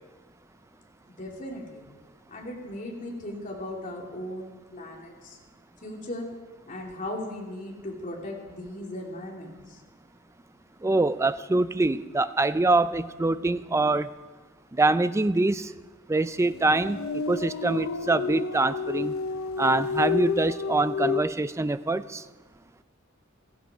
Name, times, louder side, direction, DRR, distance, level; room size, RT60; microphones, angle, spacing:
voice 1, 1.2-1.9 2.3-5.4 5.8-6.3 6.7-9.8, left 1 dB, 40° left, -1 dB, 2.9 m, -37 dB
voice 2, 10.8-14.1 14.7-15.7 16.1-17.0 17.3-19.1 19.6-22.2, right 2 dB, 15° right, 14 dB, 0.4 m, -24 dB
sound 1, 16.4-21.2, left 5 dB, 85° left, 0.6 m, -30 dB
16.0 x 14.5 x 5.0 m, 1.3 s
head